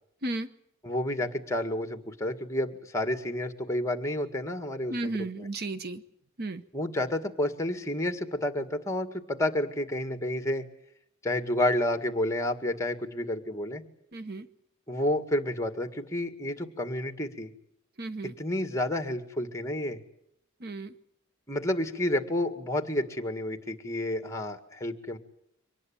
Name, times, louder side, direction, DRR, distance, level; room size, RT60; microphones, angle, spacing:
voice 1, 0.8-5.1 6.7-10.6 11.2-13.8 14.9-17.5 18.2-20.0 21.5-25.2, left 1 dB, 15° left, 8 dB, 2.0 m, -30 dB
voice 2, 4.9-6.0 6.4-6.6 14.1-14.5 18.0-18.3 20.6-20.9, right 2 dB, 50° right, 12 dB, 1.0 m, -34 dB
25.0 x 19.0 x 8.8 m, 0.75 s
head